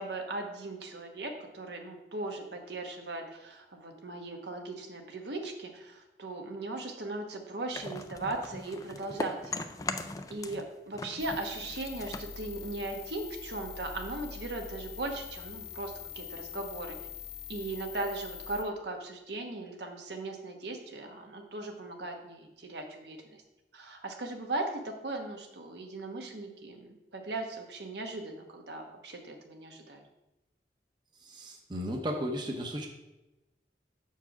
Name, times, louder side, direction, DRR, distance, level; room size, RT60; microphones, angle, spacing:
voice 1, 0.0-9.6 10.3-17.0 17.5-23.4 23.7-30.0, right 2 dB, 75° right, 3 dB, 1.1 m, -38 dB
sound 1, 7.7-10.7 10.9-13.3, left 3 dB, 20° left, 0.4 m, -39 dB
sound 2, 11.2-18.6, left 8 dB, 65° left, 1.4 m, -44 dB
voice 2, 31.2-32.9, equal, 25° right, 2 dB, 0.8 m, -35 dB
7.1 x 4.6 x 5.8 m, 0.99 s
head